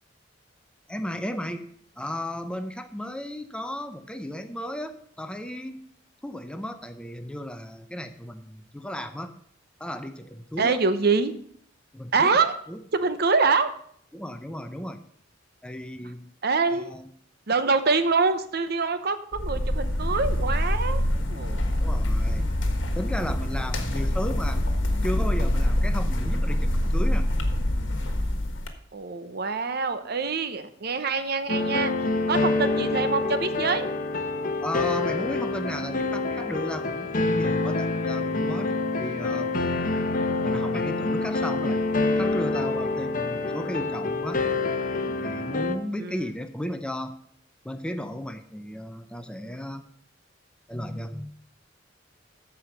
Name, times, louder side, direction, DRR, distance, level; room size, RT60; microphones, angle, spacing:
voice 1, 0.9-1.7 2.0-5.8 6.2-9.3 9.8-10.8 11.9-12.3 12.7-12.8 14.1-15.0 15.6-16.3 16.8-17.1 21.8-22.5 22.9-24.6 25.0-27.3 34.6-39.5 40.4-41.8 42.2-44.4 45.0-47.1 47.6-49.8 50.7-51.3, equal, 5° left, 8 dB, 0.6 m, -34 dB
voice 2, 10.6-11.3 12.1-12.5 12.9-13.7 16.4-16.9 17.5-21.0 21.3-21.6 28.9-31.9 32.3-33.9 46.0-46.3, right 4 dB, 55° right, 10 dB, 0.8 m, -25 dB
sound 1, 19.3-28.7, left 1 dB, 70° left, 1.4 m, -25 dB
sound 2, 31.5-45.8, left 3 dB, 45° left, 0.9 m, -26 dB
13.5 x 5.0 x 5.8 m, 0.64 s
head